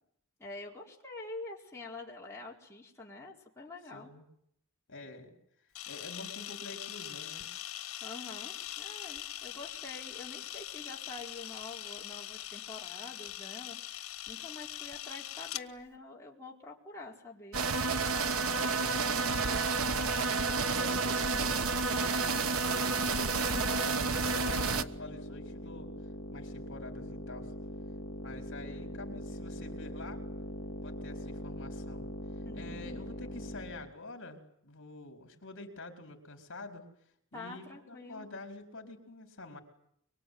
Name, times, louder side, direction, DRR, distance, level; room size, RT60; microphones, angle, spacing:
voice 1, 0.4-4.1 8.0-17.6 32.4-33.0 37.3-38.3, left 2 dB, 15° left, -3 dB, 4.6 m, -46 dB
voice 2, 3.9-4.2 4.9-5.3 5.9-7.5 18.5-19.7 20.6-26.0 26.3-27.5 28.2-30.3 30.8-32.1 32.5-36.9 37.3-39.6, left 2 dB, 60° left, 4 dB, 4.8 m, -47 dB
Camera, 5.7-15.6, left 13 dB, 80° left, 1.5 m, -42 dB
sound 1, 17.5-24.8, right 4 dB, 85° right, 1.4 m, -30 dB
sound 2, 22.9-33.9, equal, 35° left, 2.3 m, -42 dB
24.5 x 24.0 x 9.6 m, 0.72 s
head